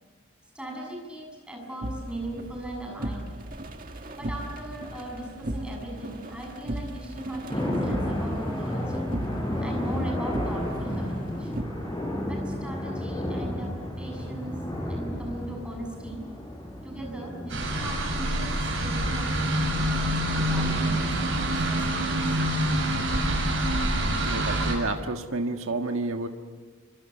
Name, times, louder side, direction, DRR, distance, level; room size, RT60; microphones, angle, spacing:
voice 1, 0.5-3.4 4.1-9.0 9.6-11.6 12.3-13.7 14.0-14.6 14.9-16.2 16.8-21.2 21.5-22.4, right 1 dB, 5° right, 0 dB, 7.1 m, -39 dB
sound 1, 1.8-11.6, right 1 dB, 45° right, 2.0 m, -37 dB
sound 2, 7.5-23.2, left 1 dB, 15° left, 6.7 m, -33 dB
sound 3, 17.5-24.7, right 1 dB, 65° right, 7.8 m, -26 dB
voice 2, 24.2-26.3, right 2 dB, 85° right, 5 dB, 1.6 m, -29 dB
29.5 x 25.5 x 7.1 m, 1.5 s
head